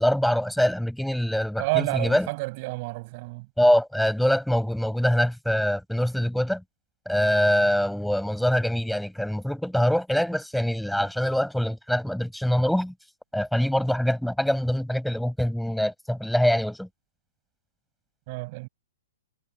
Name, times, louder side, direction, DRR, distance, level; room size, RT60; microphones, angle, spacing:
voice 1, 0.0-2.3 3.6-6.6 7.1-12.9 13.3-16.9, equal, ahead, 7.0 m, -24 dB
voice 2, 1.6-3.4 18.3-18.7, right 26 dB, 45° right, 6.4 m, -29 dB
hypercardioid pair, 140°, 0 cm